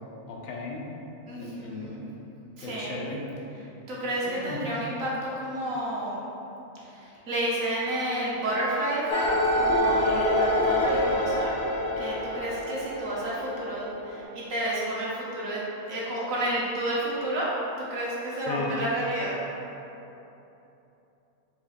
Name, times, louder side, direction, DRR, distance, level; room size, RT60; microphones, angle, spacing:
voice 1, 0.2-0.8 1.3-1.9 2.6-3.2 4.5-4.6 18.5-18.7, left 3 dB, 90° left, -2 dB, 1.1 m, -36 dB
voice 2, 1.3-2.0 2.6-3.0 3.9-6.2 6.9-9.3 9.5-11.5 12.0-15.6 15.9-17.5 17.8-19.4, right 1 dB, 80° right, -6 dB, 1.3 m, -30 dB
sound 1, 9.1-14.2, left 1 dB, 65° left, 0.6 m, -26 dB
4.7 x 2.4 x 3.9 m, 3.0 s
omnidirectional pair, 1.4 m